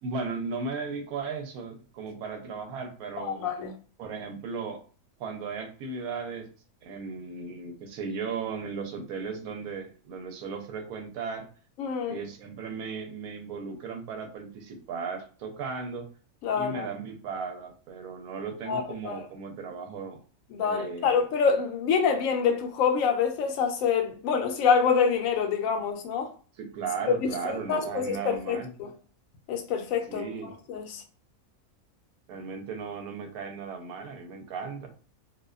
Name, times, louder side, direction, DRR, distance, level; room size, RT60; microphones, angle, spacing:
voice 1, 0.0-3.4 4.0-4.8 5.2-6.5 6.8-11.5 12.1-16.1 16.5-20.2 20.6-21.1 26.6-28.7 30.1-30.5 32.3-34.9, right 5 dB, 75° right, 1.0 m, -36 dB
voice 2, 3.2-3.7 11.8-12.2 16.4-16.9 18.7-19.2 20.5-26.3 27.4-28.9 29.5-30.3 30.7-31.0, left 6 dB, 70° left, 0.9 m, -26 dB
2.6 x 2.1 x 2.3 m
omnidirectional pair, 1.6 m